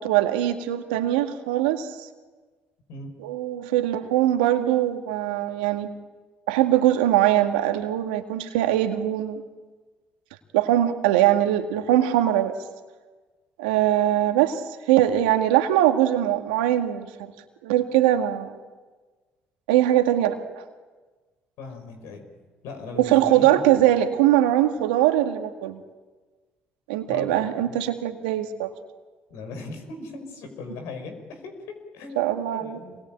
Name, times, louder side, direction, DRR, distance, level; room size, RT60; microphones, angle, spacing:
voice 1, 0.0-2.1 3.2-5.9 6.5-9.4 10.5-12.6 13.6-14.6 14.9-17.1 17.6-18.5 19.7-20.6 23.0-25.8 26.9-28.7 32.2-32.8, right 13 dB, 85° right, 6 dB, 2.0 m, -21 dB
voice 2, 21.6-22.3 22.6-23.6 27.1-27.7 29.3-33.0, left 3 dB, 75° left, 7 dB, 5.5 m, -38 dB
27.0 x 21.5 x 9.1 m, 1.3 s
hypercardioid pair, 55°, 5 cm